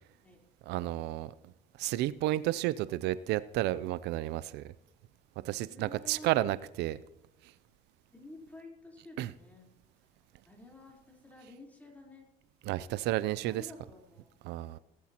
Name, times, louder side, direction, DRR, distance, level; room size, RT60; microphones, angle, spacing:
voice 1, 0.7-1.3 1.8-4.7 5.4-7.0 9.2-9.3 12.7-13.6 14.5-14.8, right 15 dB, 85° right, 0.4 m, -31 dB
voice 2, 5.7-6.5 8.1-9.7 10.4-12.3 13.3-14.8, left 1 dB, 10° left, 3.7 m, -51 dB
18.0 x 11.5 x 2.9 m
cardioid pair, 110°, 17 cm